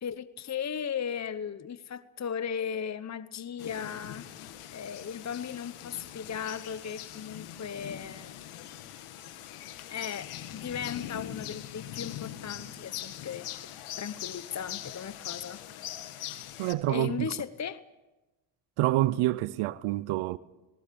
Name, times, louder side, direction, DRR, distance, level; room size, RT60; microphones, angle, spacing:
voice 1, 0.0-4.3 4.7-8.4 9.9-13.7 14.0-15.6 16.9-17.8, left 7 dB, 35° left, 1.0 m, -36 dB
sound 1, 3.6-16.7, left 11 dB, 80° left, 1.8 m, -42 dB
voice 2, 16.6-17.3 18.8-20.4, right 16 dB, 85° right, 0.8 m, -27 dB
27.5 x 19.0 x 6.9 m
supercardioid pair, 70°, 49 cm